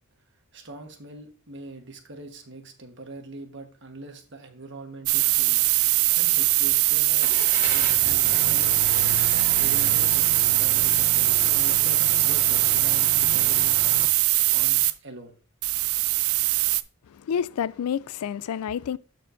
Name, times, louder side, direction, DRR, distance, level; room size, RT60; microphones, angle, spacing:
voice 1, 0.5-5.6 6.2-8.8 9.6-13.8 14.5-15.4, right 2 dB, 55° right, 1.3 m, -42 dB
sound 1, 5.1-14.9 15.6-16.8, right 18 dB, 75° right, 0.4 m, -21 dB
Car / Engine starting, 7.2-14.1, left 3 dB, 35° left, 0.8 m, -35 dB
voice 2, 17.1-19.0, left 8 dB, 85° left, 0.3 m, -29 dB
12.5 x 4.6 x 2.6 m
head